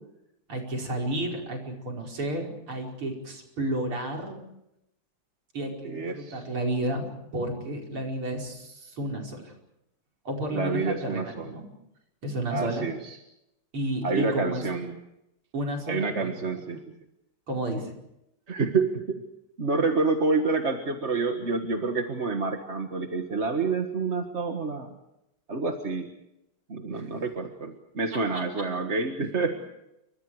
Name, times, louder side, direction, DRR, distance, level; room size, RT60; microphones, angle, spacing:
voice 1, 0.5-4.4 5.5-9.5 10.3-11.6 12.2-12.9 13.7-14.6 15.5-16.3 16.7-16.8 17.5-17.9 26.9-27.0 28.3-28.6, right 1 dB, 75° right, 0 dB, 5.9 m, -32 dB
voice 2, 5.8-6.4 10.5-11.5 12.5-13.2 14.0-15.0 15.9-16.8 18.5-19.2 19.6-24.9 25.5-26.1 26.7-29.6, right 4 dB, 35° right, 4 dB, 1.7 m, -28 dB
29.5 x 24.5 x 4.9 m, 0.85 s
omnidirectional pair, 2.4 m